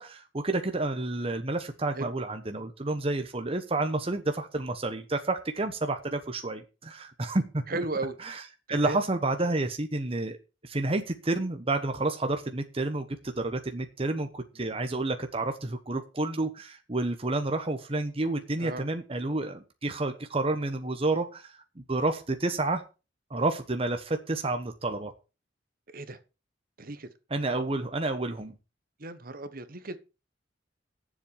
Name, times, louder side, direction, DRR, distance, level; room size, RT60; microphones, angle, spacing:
voice 1, 0.0-7.6 8.2-8.4 8.7-10.4 10.6-22.8 23.3-25.1 27.3-28.5, right 2 dB, 30° right, 1.1 m, -30 dB
voice 2, 7.7-8.1 8.7-9.0 18.6-18.8 25.9-26.2 26.8-27.1 29.0-30.0, right 2 dB, 50° right, 1.3 m, -35 dB
10.0 x 7.6 x 7.1 m
head